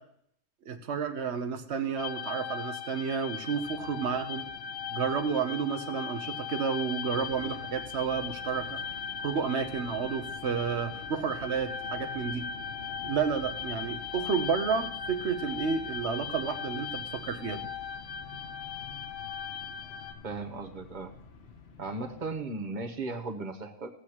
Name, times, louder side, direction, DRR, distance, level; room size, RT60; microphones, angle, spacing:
voice 1, 0.7-4.5 4.9-8.8 9.2-12.5 13.0-17.6, right 6 dB, 65° right, 8 dB, 1.1 m, -31 dB
sound 1, 2.0-20.1, left 7 dB, 85° left, 1.3 m, -39 dB
sound 2, 3.6-22.4, left 5 dB, 60° left, 1.2 m, -49 dB
voice 2, 20.2-21.1 21.8-23.9, right 3 dB, 40° right, 5 dB, 1.0 m, -36 dB
17.0 x 8.1 x 3.0 m, 0.67 s
omnidirectional pair, 1.3 m